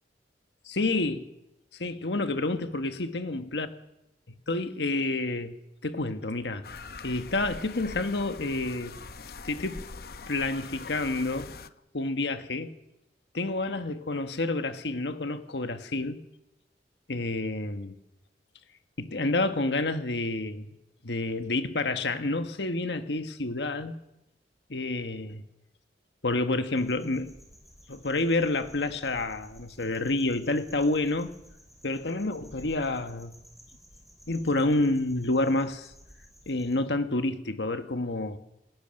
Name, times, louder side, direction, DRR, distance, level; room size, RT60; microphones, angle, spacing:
voice 1, 0.6-1.3 1.7-3.7 4.5-5.5 5.8-8.9 9.4-9.9 10.3-11.5 11.9-12.7 13.3-16.2 17.1-17.9 19.0-20.7 21.0-24.0 24.7-25.4 26.2-27.3 27.9-31.3 31.8-33.3 34.3-35.9 36.5-38.4, left 2 dB, 75° left, 1.4 m, -29 dB
sound 1, 6.6-11.7, left 4 dB, 60° left, 0.8 m, -43 dB
sound 2, 26.8-36.8, equal, ahead, 3.6 m, -53 dB
27.5 x 16.5 x 6.5 m
head